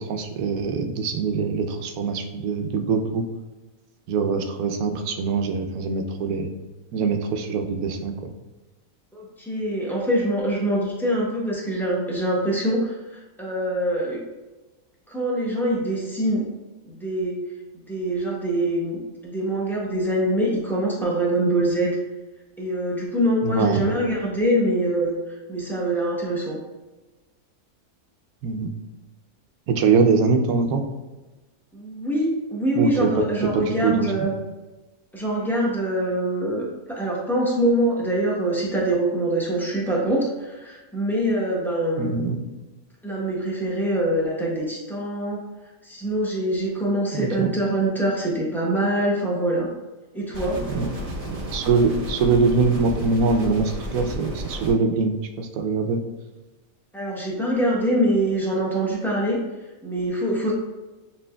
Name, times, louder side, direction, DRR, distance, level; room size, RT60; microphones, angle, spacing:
voice 1, 0.0-3.2 4.1-6.5 6.9-8.3 23.4-23.8 28.4-28.7 29.7-30.8 32.7-33.1 33.5-34.3 42.0-42.4 47.1-47.5 50.7-50.9 51.3-56.0, right 4 dB, 85° right, 5 dB, 1.0 m, -23 dB
voice 2, 9.1-14.2 15.1-16.5 16.8-17.4 17.9-19.0 19.2-21.9 22.6-25.2 25.5-26.6 31.7-34.3 35.1-42.1 43.0-45.4 45.8-49.7 50.1-50.6 56.9-59.4 59.8-60.5, right 1 dB, ahead, -5 dB, 0.6 m, -24 dB
sound 1, 50.3-54.7, right 1 dB, 45° right, 0.5 m, -32 dB
6.8 x 3.0 x 2.2 m, 1.1 s
omnidirectional pair, 1.5 m